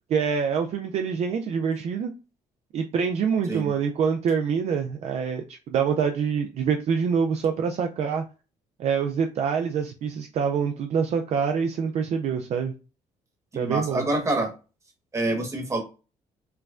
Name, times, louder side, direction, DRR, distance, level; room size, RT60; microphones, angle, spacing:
voice 1, 0.1-2.1 2.7-8.2 8.8-12.7 13.6-14.0, right 6 dB, 55° right, 0.4 m, -25 dB
voice 2, 13.5-14.5 15.1-15.8, right 2 dB, 25° right, 1.2 m, -26 dB
4.5 x 2.2 x 2.4 m
cardioid pair, 115°, 13 cm